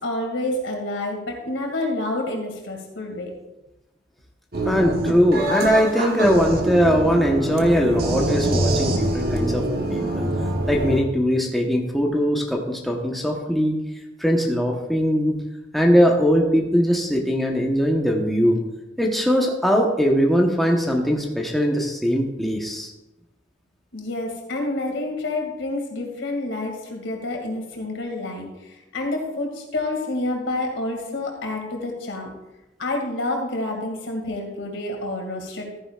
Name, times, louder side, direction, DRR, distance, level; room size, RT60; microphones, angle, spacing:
voice 1, 0.0-3.3 23.9-32.3 32.8-35.8, left 2 dB, 80° left, 1 dB, 2.3 m, -28 dB
sound 1, 4.5-11.0, right 1 dB, 55° right, 1.2 m, -24 dB
voice 2, 4.6-9.6 9.9-10.3 10.7-13.8 14.2-15.4 15.7-18.6 19.0-22.9, equal, ahead, -1 dB, 1.0 m, -20 dB
14.0 x 9.8 x 2.4 m, 1.0 s
head